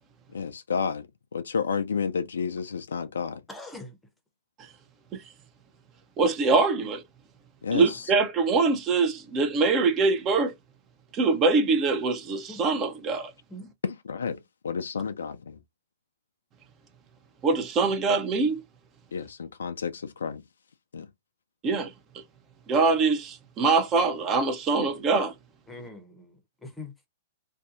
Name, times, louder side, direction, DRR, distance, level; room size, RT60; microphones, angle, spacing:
voice 1, 0.3-1.1 1.3-3.4 7.6-8.0 13.8-14.4 14.6-15.6 19.1-20.4 20.9-21.1, left 6 dB, 75° left, 0.3 m, -30 dB
voice 2, 3.5-4.0 12.5-12.6 13.5-13.7 25.7-26.3 26.6-27.1, left 2 dB, 5° left, 0.8 m, -42 dB
voice 3, 6.2-7.0 7.7-10.5 11.1-13.3 17.4-18.6 21.6-22.2 22.7-25.3, right 4 dB, 30° right, 0.6 m, -24 dB
2.6 x 2.2 x 2.5 m
figure-of-eight pair, 110°, 0 cm